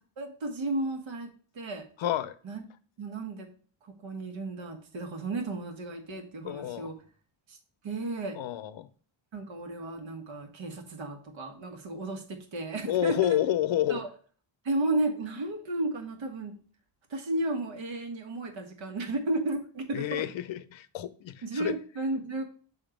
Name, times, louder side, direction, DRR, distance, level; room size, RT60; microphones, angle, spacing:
voice 1, 0.2-1.9 2.4-2.6 3.0-3.5 3.9-7.0 7.5-7.6 7.8-8.4 9.3-13.4 13.9-14.1 14.6-16.5 17.1-20.2 21.4-22.4, right 2 dB, 70° right, 1.6 m, -33 dB
voice 2, 2.0-2.3 6.4-6.9 8.4-8.9 12.9-14.0 19.9-21.7, left 12 dB, 75° left, 0.7 m, -29 dB
6.5 x 3.6 x 5.0 m
wide cardioid pair, 110°, 47 cm